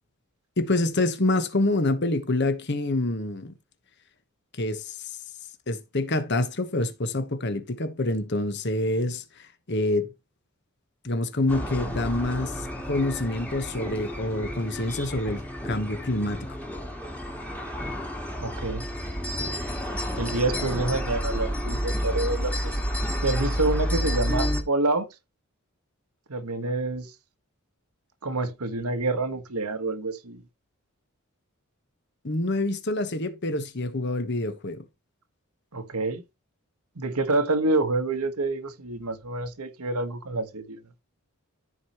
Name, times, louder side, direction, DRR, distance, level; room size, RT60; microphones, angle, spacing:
voice 1, 0.6-3.5 4.6-5.1 5.7-10.1 11.0-16.5 32.2-34.8, left 2 dB, 50° left, 1.2 m, -27 dB
sound 1, 11.5-24.6, equal, 5° left, 1.7 m, -30 dB
voice 2, 18.4-18.9 20.2-22.8 23.2-25.1 26.3-27.1 28.2-30.4 35.7-36.2 36.9-40.8, right 2 dB, 85° right, 1.4 m, -27 dB
14.0 x 4.8 x 3.0 m
head